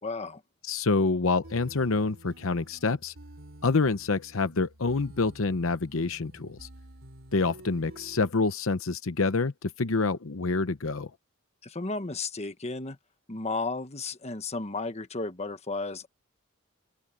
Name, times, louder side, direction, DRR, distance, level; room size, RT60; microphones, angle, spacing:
voice 1, 0.0-0.4 11.6-13.0 13.3-16.1, left 3 dB, 30° left, 1.3 m, -33 dB
voice 2, 0.6-3.1 3.6-6.7 7.3-11.1, left 3 dB, 70° left, 0.8 m, -27 dB
sound 1, 1.4-8.3, right 1 dB, 65° right, 3.4 m, -50 dB
open air
head